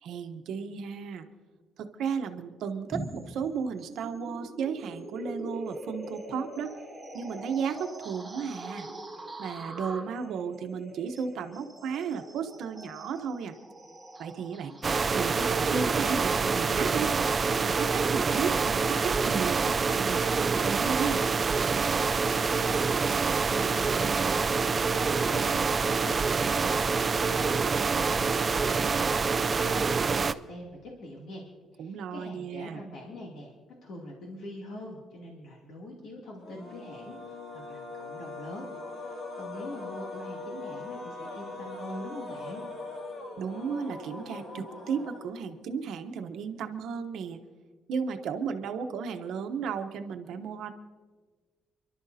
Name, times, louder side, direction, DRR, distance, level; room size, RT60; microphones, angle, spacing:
voice 1, 0.0-1.3 1.8-6.7 7.1-8.9 9.4-13.5 14.2-14.7 15.1-17.1 17.6-21.2 31.8-32.8 43.4-47.4 47.9-50.7, right 6 dB, 70° right, 6 dB, 0.9 m, -34 dB
sound 1, 2.9-19.8, right 1 dB, 10° right, 2.0 m, -44 dB
sound 2, 14.8-30.3, right 5 dB, 25° right, 0.3 m, -26 dB
voice 2, 22.5-31.5 31.7-33.5 33.8-42.6, left 1 dB, 65° left, -3 dB, 2.7 m, -43 dB
sound 3, 36.4-45.7, left 3 dB, 50° left, 1.8 m, -41 dB
29.5 x 12.0 x 2.8 m, 1.4 s
cardioid pair, 180°, 0 cm